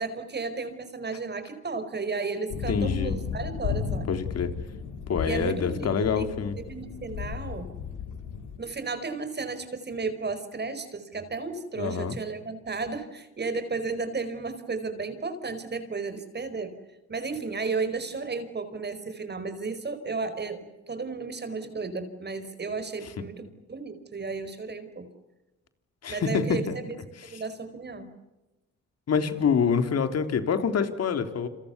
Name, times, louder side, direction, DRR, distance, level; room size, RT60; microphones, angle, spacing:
voice 1, 0.0-4.1 5.2-7.7 8.6-16.8 17.1-25.1 26.1-26.9 27.2-28.2, right 4 dB, 35° right, 11 dB, 4.9 m, -33 dB
sound 1, 2.5-8.6, left 7 dB, 85° left, 4.1 m, -34 dB
voice 2, 2.7-3.2 4.1-4.5 5.1-6.6 11.8-12.2 26.0-26.8 27.3-27.4 29.1-31.5, left 6 dB, 55° left, 8 dB, 3.7 m, -26 dB
29.0 x 28.0 x 7.1 m, 1.0 s
cardioid pair, 90°, 30 cm